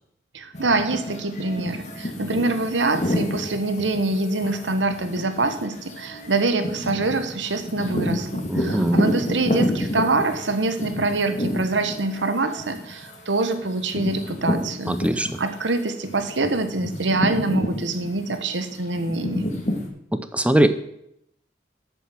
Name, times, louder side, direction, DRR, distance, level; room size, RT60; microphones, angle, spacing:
voice 1, 0.3-15.0 15.4-19.5, right 2 dB, 90° right, 9 dB, 1.2 m, -25 dB
sound 1, 0.5-15.7 16.0-19.9, left 1 dB, 40° left, 2.0 m, -29 dB
voice 2, 8.5-9.0 14.9-15.4 20.1-20.7, right 1 dB, 5° right, 11 dB, 0.7 m, -21 dB
9.2 x 7.0 x 7.6 m, 0.77 s
head